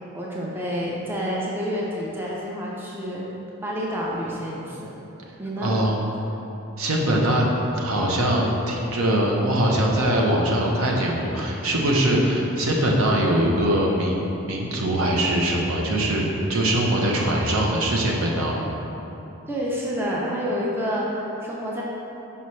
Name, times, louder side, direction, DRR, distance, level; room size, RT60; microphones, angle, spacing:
voice 1, 0.1-3.2 3.6-4.9 5.4-5.8 19.5-21.8, equal, 10° right, -5 dB, 0.6 m, -28 dB
voice 2, 5.6-6.0 6.8-7.5 7.7-18.7, right 1 dB, 75° right, -1 dB, 0.8 m, -22 dB
5.6 x 5.6 x 3.2 m, 3.0 s
head